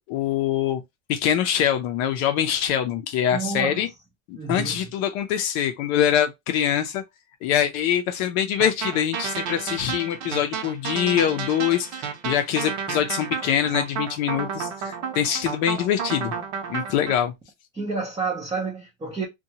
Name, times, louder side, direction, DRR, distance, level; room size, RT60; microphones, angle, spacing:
voice 1, 0.1-0.8 1.1-3.9 4.3-7.0 7.4-16.3 16.7-17.3, left 10 dB, 55° left, 0.5 m, -24 dB
voice 2, 3.3-3.8 4.3-4.8 17.7-19.3, right 4 dB, 10° right, 0.4 m, -29 dB
sound 1, 8.6-17.2, right 6 dB, 60° right, 0.8 m, -31 dB
2.7 x 2.2 x 2.7 m
supercardioid pair, 150°, 40 cm